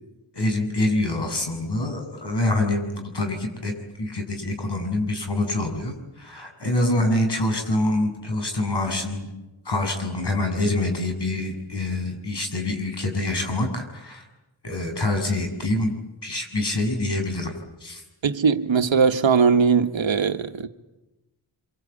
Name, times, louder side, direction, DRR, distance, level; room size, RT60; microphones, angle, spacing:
voice 1, 0.3-3.7 4.0-9.3 9.7-14.2 14.6-15.9 16.2-17.5 17.8-18.0, left 2 dB, 55° left, 7.6 m, -25 dB
voice 2, 18.2-20.7, right 5 dB, 70° right, 1.5 m, -20 dB
26.0 x 26.0 x 8.6 m
cardioid pair, 50°, 47 cm